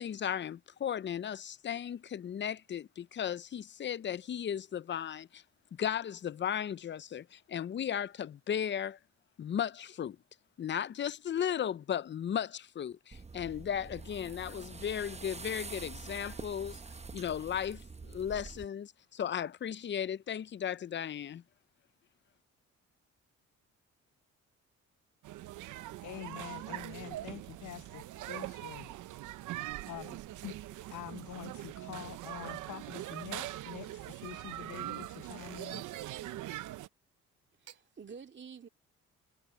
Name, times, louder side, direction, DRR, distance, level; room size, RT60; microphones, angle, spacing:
voice 1, 0.0-5.4 5.7-9.0 9.4-10.2 10.6-16.8 17.1-21.4, left 9 dB, 40° left, 0.6 m, -36 dB
sound 1, 13.1-18.7, right 4 dB, 20° right, 0.9 m, -46 dB
sound 2, 25.2-36.9, right 15 dB, 85° right, 0.9 m, -42 dB
voice 2, 25.7-28.9 29.9-30.6 30.9-35.8, left 14 dB, 75° left, 0.9 m, -46 dB
Gurgling / Chink clink / Liquid, 35.1-36.8 37.5-37.9, right 9 dB, 60° right, 3.9 m, -63 dB
voice 3, 37.6-38.7, right 6 dB, 40° right, 2.3 m, -49 dB
cardioid pair, 90°, 30 cm